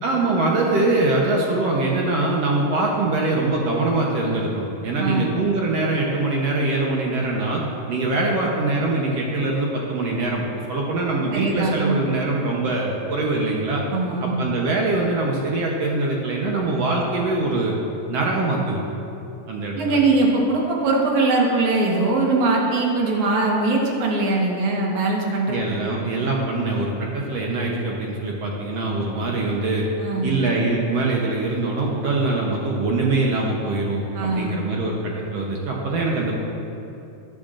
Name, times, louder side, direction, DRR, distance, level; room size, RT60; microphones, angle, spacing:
voice 1, 0.0-7.6 7.9-10.4 10.7-13.8 14.2-17.7 18.1-18.8 19.5-20.0 25.5-29.9 30.2-36.3, right 2 dB, 65° right, -2 dB, 1.8 m, -23 dB
voice 2, 5.0-5.3 11.3-12.0 13.9-14.4 19.8-25.9 30.0-30.4 34.2-34.6, right 3 dB, 85° right, -2 dB, 2.8 m, -21 dB
13.5 x 10.0 x 2.5 m, 2.8 s
omnidirectional pair, 3.3 m